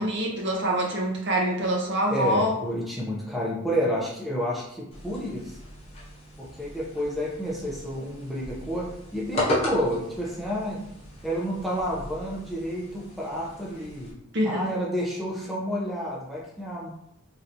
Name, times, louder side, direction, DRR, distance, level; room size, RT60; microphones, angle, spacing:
voice 1, 0.0-2.5 14.3-14.8, right 1 dB, 55° right, 0 dB, 0.7 m, -25 dB
voice 2, 2.1-5.6 6.4-10.8 11.2-14.1 14.4-16.9, equal, ahead, -5 dB, 0.6 m, -30 dB
sound 1, 4.9-14.1, left 1 dB, 30° left, 0.8 m, -36 dB
3.3 x 2.8 x 2.6 m, 0.74 s
head